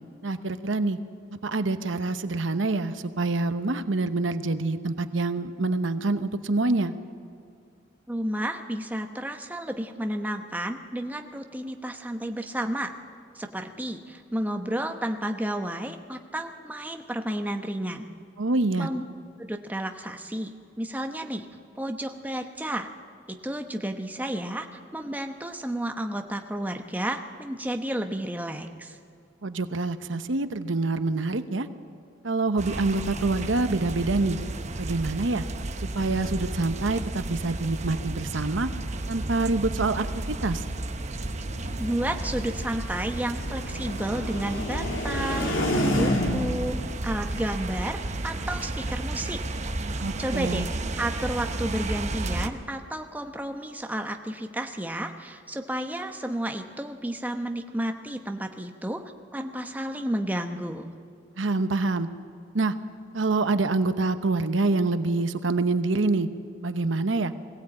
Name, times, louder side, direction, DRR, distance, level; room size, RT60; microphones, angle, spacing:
voice 1, 0.2-1.0 1.4-6.9 18.4-18.9 29.4-31.7 32.2-34.4 34.8-35.4 35.9-38.7 39.1-40.1 40.4-40.6 50.0-50.7 61.4-62.1 62.5-62.7 63.1-66.3 66.6-67.3, right 3 dB, 75° right, 11 dB, 0.9 m, -26 dB
voice 2, 8.1-12.9 13.3-18.1 18.8-19.0 19.4-20.5 20.8-21.5 21.8-22.9 23.3-29.0 41.8-46.8 47.0-49.4 50.2-50.7 51.0-59.0 59.3-60.9, right 1 dB, 10° right, 5 dB, 0.9 m, -32 dB
sound 1, 32.6-52.5, right 2 dB, 35° right, 0.9 m, -33 dB
sound 2, 41.2-46.7, left 1 dB, 90° left, 2.6 m, -30 dB
21.5 x 16.0 x 8.8 m, 2.3 s
head